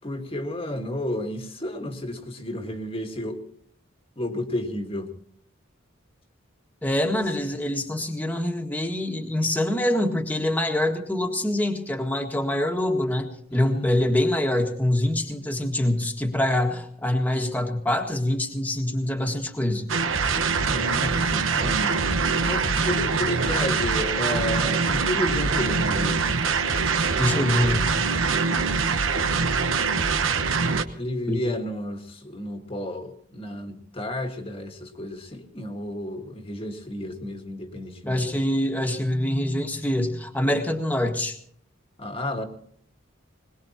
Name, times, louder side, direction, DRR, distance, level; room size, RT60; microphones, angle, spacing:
voice 1, 0.0-3.4 4.2-5.1 13.5-13.9 20.6-21.9 22.4-26.2 30.7-38.3 42.0-42.4, left 1 dB, 25° left, 4 dB, 1.6 m, -32 dB
voice 2, 6.8-19.9 27.2-27.9 31.3-31.5 38.1-41.4, left 1 dB, 10° left, 3 dB, 1.6 m, -25 dB
sound 1, 19.9-30.8, right 5 dB, 75° right, 1.1 m, -24 dB
21.5 x 20.5 x 2.9 m, 0.63 s
head